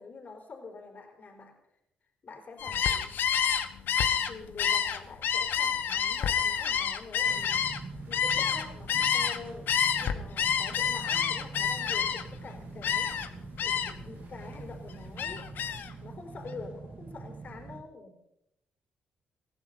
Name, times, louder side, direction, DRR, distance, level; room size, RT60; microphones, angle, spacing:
voice 1, 0.0-1.5 2.2-3.2 4.3-7.8 8.1-9.7 10.0-13.1 13.6-15.5 16.0-18.2, left 4 dB, 50° left, 2 dB, 4.4 m, -46 dB
Gull seagull, 2.6-9.4 9.7-12.4 12.8-13.3 13.6-14.1 14.4-15.9, left 8 dB, 70° left, 1.2 m, -28 dB
sound 1, 7.3-17.8, right 4 dB, 55° right, 2.4 m, -44 dB
21.5 x 15.0 x 4.1 m, 0.81 s
supercardioid pair, 60°, 3 cm